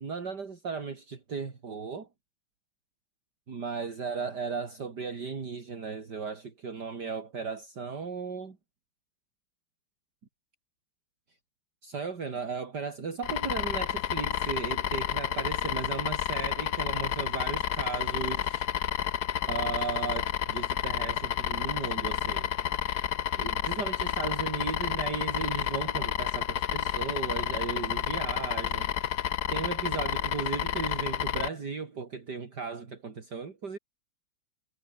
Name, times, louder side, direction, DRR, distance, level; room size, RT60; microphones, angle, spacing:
voice 1, 0.0-2.1 3.5-8.6 11.8-18.7 19.5-22.5 23.4-33.8, right 5 dB, 50° right, 3.2 m, -36 dB
sound 1, 13.2-31.5, left 10 dB, 55° left, 1.3 m, -30 dB
omnidirectional pair, 2.3 m